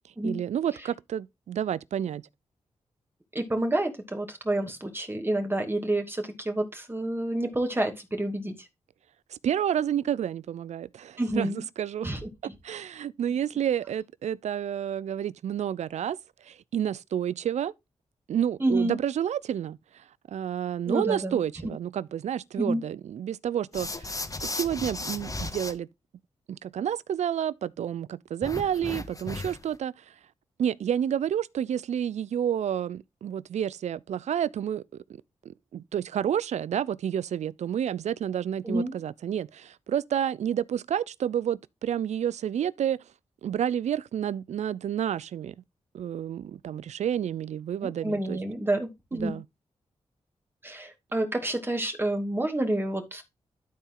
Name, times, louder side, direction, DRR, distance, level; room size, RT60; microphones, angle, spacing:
voice 1, 0.2-2.2 9.3-12.1 12.4-16.2 16.4-17.7 18.3-25.9 26.5-30.0 30.6-35.0 35.4-43.0 43.4-45.5 45.9-48.4 49.1-49.4, right 9 dB, 75° right, 0.4 m, -30 dB
voice 2, 3.3-8.5 11.2-11.6 12.0-12.5 18.6-19.0 20.9-21.4 22.6-22.8 38.6-38.9 47.8-49.4 50.6-53.2, right 1 dB, 20° right, 2.3 m, -29 dB
sound 1, 23.7-25.7 28.4-29.7, left 2 dB, 30° left, 1.6 m, -35 dB
12.5 x 4.3 x 3.8 m
cardioid pair, 50°, 12 cm